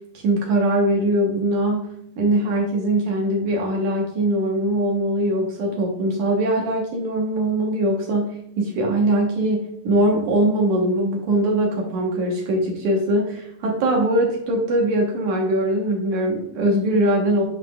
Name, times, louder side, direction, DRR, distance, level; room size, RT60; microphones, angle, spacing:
voice 1, 0.1-1.9 2.2-17.4, right 1 dB, 70° right, 0 dB, 1.9 m, -21 dB
8.9 x 5.7 x 2.3 m, 0.75 s
omnidirectional pair, 4.6 m